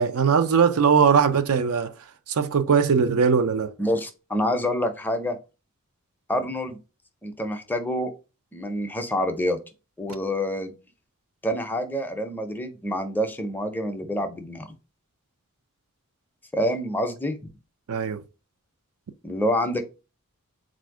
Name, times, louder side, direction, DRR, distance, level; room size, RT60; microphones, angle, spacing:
voice 1, 0.0-1.9 2.3-3.7 17.9-18.2, right 6 dB, 75° right, 0.5 m, -20 dB
voice 2, 3.8-5.4 6.3-6.8 7.2-8.1 8.5-9.6 10.0-10.7 11.4-14.7 16.5-17.5 19.2-19.8, equal, 10° left, 0.5 m, -27 dB
4.1 x 2.6 x 4.7 m
head